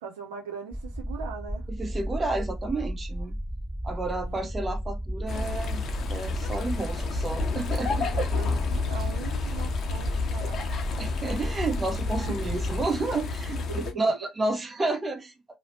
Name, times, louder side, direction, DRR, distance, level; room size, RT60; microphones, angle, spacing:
voice 1, 0.0-1.7 4.0-4.5 7.8-10.8 13.7-14.1, right 6 dB, 85° right, 0.6 m, -40 dB
sound 1, 0.7-12.9, equal, 5° right, 0.3 m, -34 dB
voice 2, 1.7-3.4 3.8-5.8 6.1-8.5 11.0-15.3, right 2 dB, 30° right, 0.8 m, -31 dB
sound 2, 5.3-13.9, left 4 dB, 50° left, 0.6 m, -31 dB
2.7 x 2.1 x 2.9 m
hypercardioid pair, 55°, 0 cm